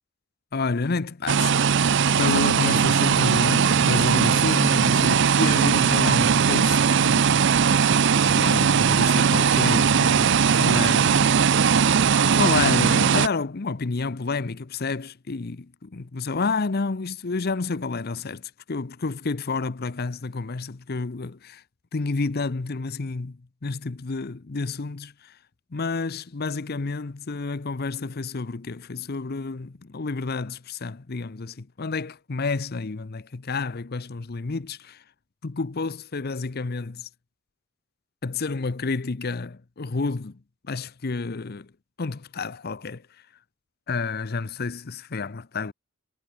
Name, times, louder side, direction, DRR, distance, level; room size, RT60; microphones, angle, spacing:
voice 1, 0.5-1.6 2.2-7.3 8.2-11.3 12.3-18.4 18.7-21.6 21.9-25.3 25.7-35.0 35.4-37.1 38.2-40.4 40.7-41.7 42.0-43.0 43.9-45.7, left 4 dB, 45° left, 0.7 m, -29 dB
sound 1, 1.3-13.3, right 6 dB, 55° right, 0.6 m, -19 dB
head